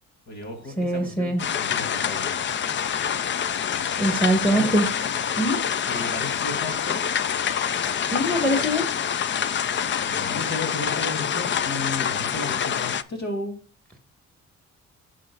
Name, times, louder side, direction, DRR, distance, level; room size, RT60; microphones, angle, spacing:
voice 1, 0.3-1.3 1.6-2.4 4.5-4.7 5.9-7.1 9.9-13.6, left 2 dB, 65° left, 2 dB, 2.8 m, -34 dB
voice 2, 0.8-1.4 4.0-4.8 5.4-5.6 8.0-8.9, right 1 dB, 5° left, 4 dB, 1.5 m, -22 dB
sound 1, 1.4-13.0, left 8 dB, 40° left, 0.4 m, -26 dB
10.5 x 6.5 x 2.4 m, 0.39 s
cardioid pair, 90°, 30 cm